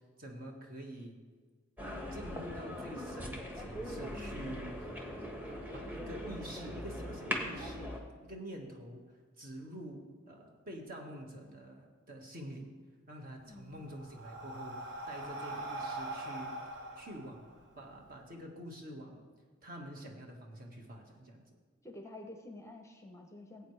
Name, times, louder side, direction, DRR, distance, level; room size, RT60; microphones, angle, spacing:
voice 1, 0.2-1.2 1.8-4.9 5.5-7.9 8.2-9.0 9.4-12.7 13.1-14.8 15.1-16.5 16.9-17.5 17.8-19.2 19.6-21.4, right 1 dB, 45° right, 1 dB, 1.7 m, -47 dB
sound 1, 1.8-8.0, equal, 10° right, 1.2 m, -40 dB
voice 2, 13.4-13.9 21.8-23.7, left 1 dB, 15° left, 4 dB, 0.7 m, -49 dB
Breathing, 13.4-18.1, right 1 dB, 60° right, 1.2 m, -42 dB
17.0 x 8.4 x 3.3 m, 1.5 s
head